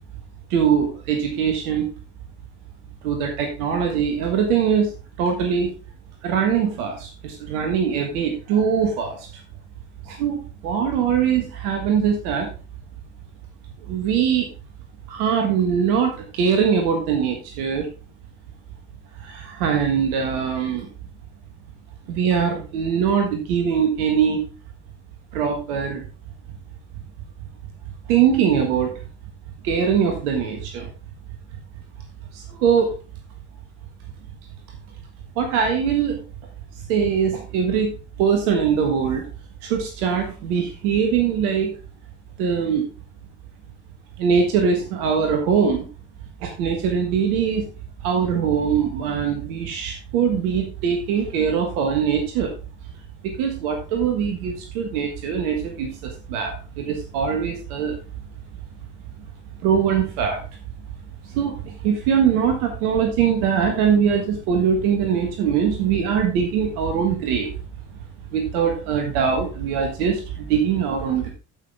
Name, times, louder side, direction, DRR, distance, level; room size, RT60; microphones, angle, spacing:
voice 1, 0.5-1.9 3.0-4.9 5.2-5.7 6.2-9.3 10.0-12.5 13.9-14.5 15.1-17.9 19.2-20.9 22.1-24.4 25.3-26.0 28.1-28.9 29.6-30.9 32.3-32.9 35.4-36.2 36.9-37.9 38.2-39.3 39.6-41.7 42.4-42.8 44.2-45.8 46.4-47.6 48.0-52.5 53.2-58.0 59.6-60.4 61.3-67.5 68.3-71.3, right 7 dB, 75° right, 4 dB, 1.6 m, -22 dB
13.5 x 5.8 x 3.5 m, 0.35 s
hypercardioid pair, 50°, 45 cm